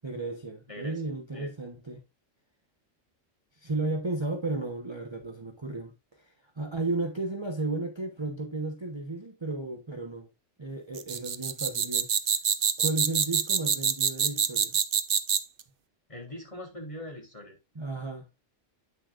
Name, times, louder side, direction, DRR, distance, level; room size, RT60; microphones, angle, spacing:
voice 1, 0.0-2.0 3.6-10.3 10.6-12.1 12.8-14.8 17.8-18.3, right 2 dB, 20° right, 1.1 m, -34 dB
voice 2, 0.7-1.5 16.1-17.6, left 1 dB, 25° left, 3.6 m, -42 dB
sound 1, 10.9-15.6, right 7 dB, 50° right, 0.9 m, -26 dB
9.7 x 9.3 x 2.5 m
omnidirectional pair, 1.4 m